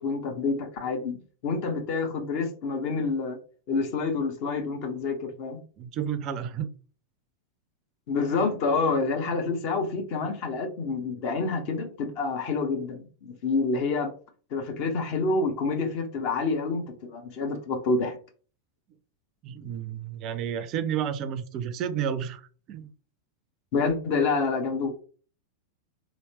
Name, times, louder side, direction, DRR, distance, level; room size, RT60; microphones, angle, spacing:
voice 1, 0.0-3.4 3.7-5.6 8.1-14.1 14.5-18.2 23.7-24.9, left 4 dB, 45° left, 4 dB, 0.9 m, -28 dB
voice 2, 5.8-6.7 19.4-22.9, right 8 dB, 35° right, 12 dB, 0.4 m, -31 dB
3.1 x 2.8 x 2.9 m, 0.40 s
figure-of-eight pair, 90°, 0 cm